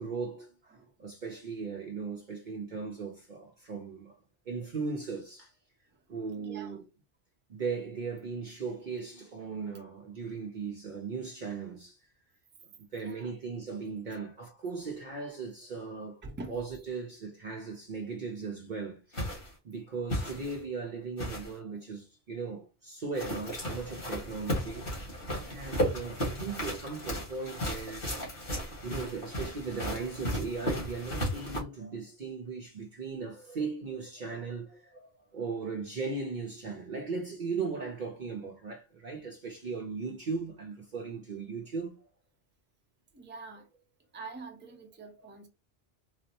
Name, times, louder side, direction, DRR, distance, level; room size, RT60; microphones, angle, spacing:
voice 1, 0.0-0.6 1.0-4.2 4.5-5.5 6.1-6.8 7.5-12.0 12.9-16.2 16.5-19.2 19.6-28.0 28.8-42.1, right 4 dB, 50° right, 0.7 m, -38 dB
voice 2, 5.9-6.9 12.9-13.3 16.2-16.6 43.1-43.7 44.1-45.5, right 3 dB, 10° right, 0.6 m, -46 dB
sound 1, 19.1-19.5 20.1-20.6 21.2-21.6 23.1-31.6, equal, 55° left, 1.7 m, -35 dB
3.9 x 2.0 x 2.7 m
omnidirectional pair, 1.1 m